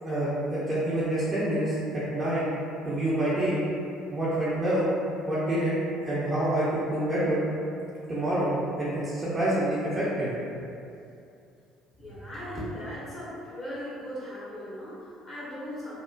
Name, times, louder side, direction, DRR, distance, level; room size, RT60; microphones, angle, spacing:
voice 1, 0.0-2.4 2.8-3.6 4.1-4.9 5.2-7.4 8.1-8.5 8.8-10.3, right 1 dB, 25° right, -10 dB, 0.6 m, -27 dB
voice 2, 12.0-15.9, equal, 35° left, -10 dB, 1.0 m, -38 dB
2.9 x 2.1 x 2.4 m, 2.6 s
figure-of-eight pair, 55°, 0 cm